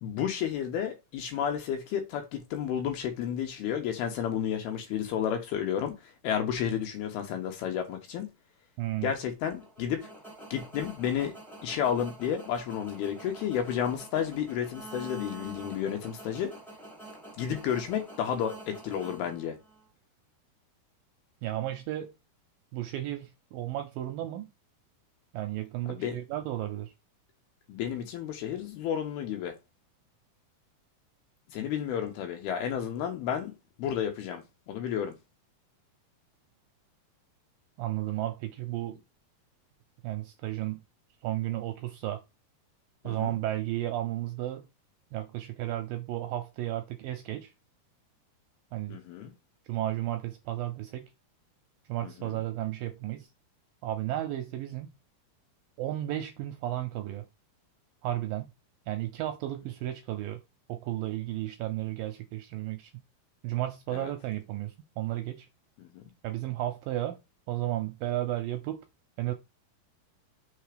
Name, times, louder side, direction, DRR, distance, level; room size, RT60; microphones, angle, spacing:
voice 1, 0.0-8.3 9.0-10.1 10.5-11.3 11.6-16.5 17.4-19.6 25.9-26.2 27.7-29.6 31.5-35.1 43.0-43.4 48.9-49.3 52.0-52.4 63.9-64.1 65.8-66.0, left 9 dB, 75° left, 3.0 m, -32 dB
voice 2, 8.8-9.1 21.4-22.1 22.7-24.5 25.3-26.9 37.8-39.0 40.0-40.8 41.2-42.2 43.0-44.7 45.1-47.5 48.7-49.0 49.7-51.1 51.9-53.3 53.8-54.9 55.8-57.3 58.0-58.5 58.9-60.4 60.7-63.0 63.4-65.5 66.2-67.2 67.5-68.8 69.2-69.3, right 14 dB, 80° right, 2.1 m, -33 dB
sound 1, 9.4-19.9, right 2 dB, 5° left, 0.3 m, -47 dB
6.3 x 3.5 x 5.0 m
omnidirectional pair, 4.7 m